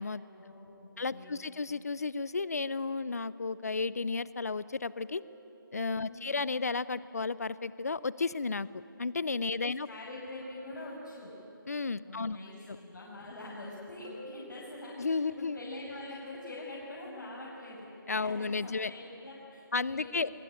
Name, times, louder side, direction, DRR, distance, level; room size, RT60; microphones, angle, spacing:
voice 1, 0.4-1.4 6.0-6.5 9.6-11.3 12.0-17.9 18.1-20.3, left 2 dB, 65° left, -6 dB, 6.0 m, -45 dB
voice 2, 1.0-5.2 5.7-8.7 9.0-9.9 11.7-12.4 12.7-12.8 15.0-15.6 18.1-18.9 19.7-20.3, left 4 dB, 45° left, 18 dB, 0.6 m, -33 dB
sound 1, 5.0-6.1 10.4-11.6 14.0-15.3 18.6-18.8, right 2 dB, 10° right, 1.2 m, -54 dB
23.0 x 21.0 x 8.9 m, 3.0 s
figure-of-eight pair, 175°, 12 cm